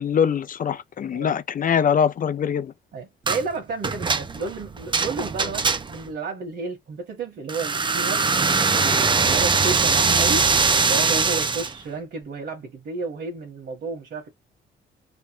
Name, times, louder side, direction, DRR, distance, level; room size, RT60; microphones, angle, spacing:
voice 1, 0.0-2.7, left 7 dB, 45° left, 0.5 m, -23 dB
voice 2, 2.9-8.3 8.6-10.5 10.9-14.3, right 4 dB, 60° right, 1.6 m, -32 dB
sound 1, 3.3-3.5 3.8-6.1 7.5-11.7, right 4 dB, 25° right, 0.6 m, -21 dB
3.3 x 2.2 x 3.1 m
cardioid pair, 90°, 20 cm